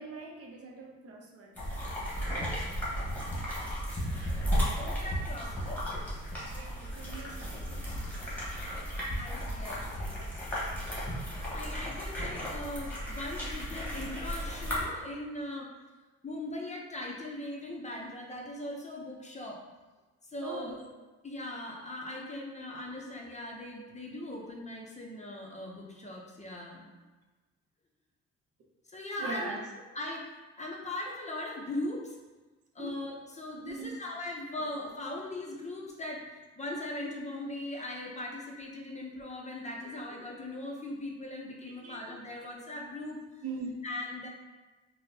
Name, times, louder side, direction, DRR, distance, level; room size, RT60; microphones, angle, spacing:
voice 1, 0.0-1.6 2.1-2.7 6.5-7.6 20.4-20.8 29.2-29.6 32.8-32.9 33.6-34.0 41.7-42.0 43.4-43.8, right 3 dB, 50° right, 1 dB, 0.6 m, -41 dB
sound 1, 1.6-14.8, equal, 5° left, 1.2 m, -34 dB
voice 2, 4.8-5.9 9.1-10.3 10.9-15.7 16.2-19.6 20.2-20.8 21.2-26.9 28.9-29.5 29.9-30.3 30.6-32.2 32.7-36.3 36.6-43.4 43.8-44.3, left 1 dB, 25° left, -1 dB, 0.5 m, -40 dB
4.1 x 2.1 x 2.6 m, 1.2 s
cardioid pair, 90°, 30 cm